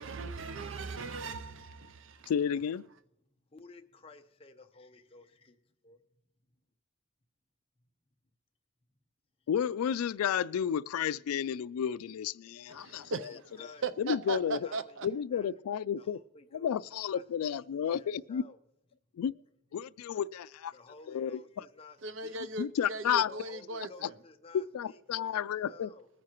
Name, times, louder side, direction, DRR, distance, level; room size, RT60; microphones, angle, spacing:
voice 1, 0.0-2.3 12.7-13.4 13.8-15.1 22.0-24.1, right 4 dB, 60° right, 0.5 m, -38 dB
voice 2, 2.3-2.8 9.5-13.1 14.0-14.7 15.0-16.2 16.5-18.4 19.1-19.3 19.7-20.7 21.1-21.4 22.6-23.3 24.7-25.9, left 8 dB, 90° left, 0.3 m, -32 dB
voice 3, 3.5-6.0 9.4-9.5 12.7-12.8 13.3-15.5 16.0-16.8 17.1-18.6 20.7-22.6 23.3-26.1, left 3 dB, 25° left, 0.7 m, -54 dB
21.0 x 9.5 x 3.0 m
head